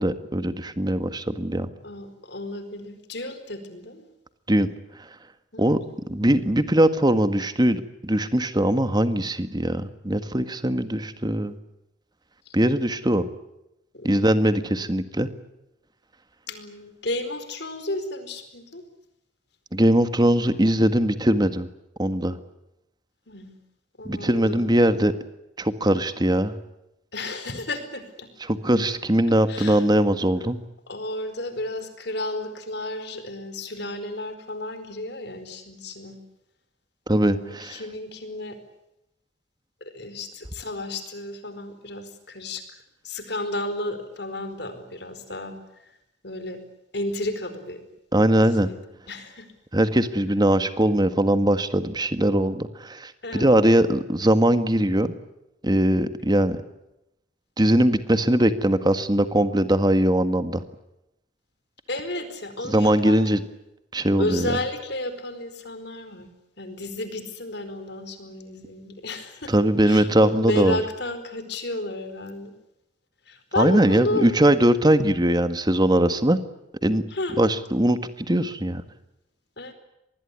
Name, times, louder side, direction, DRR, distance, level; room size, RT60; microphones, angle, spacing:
voice 1, 0.0-1.7 4.5-4.7 5.6-5.8 6.1-11.5 12.5-13.3 14.0-15.3 19.7-21.7 22.0-22.4 24.0-25.1 25.6-26.5 28.5-30.6 37.1-37.8 48.1-48.7 49.7-55.1 55.6-56.6 57.6-60.6 62.7-63.4 63.9-64.5 69.5-70.8 73.6-76.4 76.8-77.0 77.4-78.0 78.3-78.8, right 1 dB, 20° right, 10 dB, 1.7 m, -21 dB
voice 2, 1.8-4.0 5.5-6.2 12.4-12.5 13.9-14.3 16.5-18.8 23.3-23.5 24.0-24.6 27.1-28.3 29.5-29.9 30.9-36.2 37.3-38.6 39.8-45.9 46.2-46.6 46.9-47.8 48.4-49.5 53.2-53.8 61.9-63.2 64.2-66.3 66.6-69.5 69.8-72.5 73.3-74.3 77.1-77.4 79.6-79.7, left 2 dB, 60° left, 10 dB, 4.6 m, -32 dB
25.5 x 20.5 x 9.7 m, 0.88 s
head